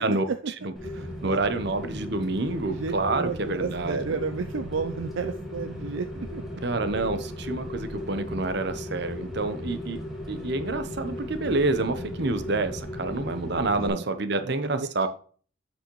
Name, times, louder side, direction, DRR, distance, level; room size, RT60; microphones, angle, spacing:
voice 1, 0.0-0.5 0.8-1.4 1.9-2.0 2.6-6.4 13.8-14.0 14.4-15.1, right 5 dB, 75° right, 9 dB, 0.5 m, -32 dB
Rain, 0.8-13.9, left 1 dB, ahead, 1.9 m, -36 dB
voice 2, 1.2-4.0 6.6-10.0 10.3-15.1, right 2 dB, 55° right, 10 dB, 0.9 m, -28 dB
7.8 x 6.5 x 3.1 m, 0.43 s
head